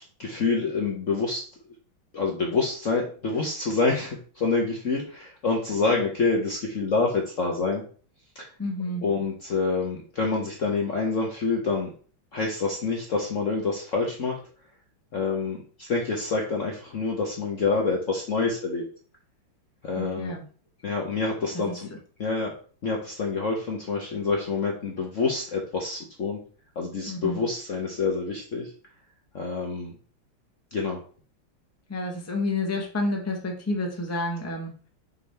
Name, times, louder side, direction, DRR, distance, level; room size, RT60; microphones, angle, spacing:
voice 1, 0.2-1.4 2.1-7.8 8.3-8.5 9.0-11.9 12.3-14.4 15.1-18.8 19.8-20.3 20.8-21.9 22.2-22.5 22.8-26.4 26.8-28.7 29.3-29.9 30.7-31.0, left 4 dB, 45° left, 0 dB, 1.1 m, -27 dB
voice 2, 8.6-9.0 20.0-20.4 21.7-21.8 27.1-27.4 31.9-34.7, left 2 dB, 10° left, 1 dB, 1.0 m, -29 dB
6.0 x 5.3 x 3.4 m, 0.41 s
omnidirectional pair, 2.3 m